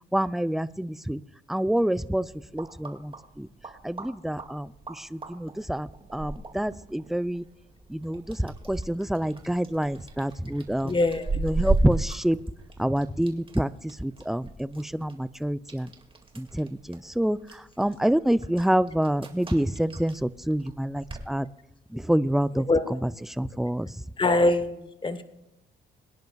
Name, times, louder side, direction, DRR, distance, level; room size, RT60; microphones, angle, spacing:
voice 1, 0.1-1.2 1.5-2.3 2.5-3.5 3.8-7.4 7.9-10.9 11.4-12.4 12.8-15.9 16.4-21.5 21.9-22.7 23.4-23.9, right 1 dB, ahead, 16 dB, 0.4 m, -27 dB
sound 1, 2.1-21.3, right 3 dB, 25° right, 2.1 m, -36 dB
voice 2, 10.8-11.4 22.5-23.0 24.2-25.2, left 2 dB, 25° left, 10 dB, 1.2 m, -24 dB
23.0 x 10.5 x 2.3 m, 0.91 s
cardioid pair, 90°, 20 cm